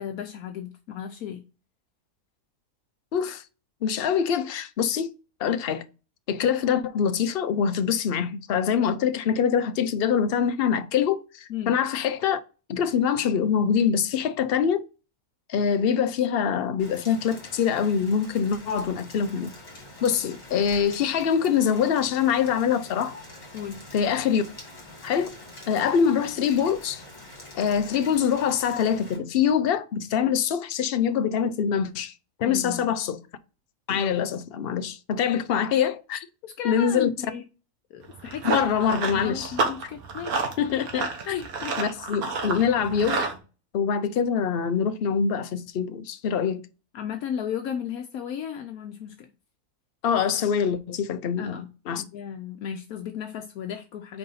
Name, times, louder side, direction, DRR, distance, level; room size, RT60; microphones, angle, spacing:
voice 1, 0.0-1.4 11.5-11.7 23.5-23.8 32.4-32.9 36.4-37.4 37.9-38.6 39.1-40.5 41.3-41.7 46.9-49.3 51.4-51.7 52.0-54.2, left 8 dB, 75° left, 1.1 m, -34 dB
voice 2, 3.1-3.4 3.8-5.1 5.4-5.8 6.3-12.4 12.7-14.8 15.5-19.5 20.0-23.2 23.9-24.4 25.0-25.3 25.7-27.0 27.5-32.1 32.4-33.2 33.9-36.2 36.6-37.1 38.4-39.5 40.6-41.4 41.8-43.3 43.7-46.6 50.0-51.6 51.9-52.0, left 7 dB, 55° left, 0.7 m, -24 dB
Rain, 16.8-29.2, left 1 dB, 30° left, 1.9 m, -45 dB
Run, 38.0-43.4, right 4 dB, 75° right, 1.6 m, -30 dB
4.6 x 3.9 x 5.5 m
omnidirectional pair, 1.6 m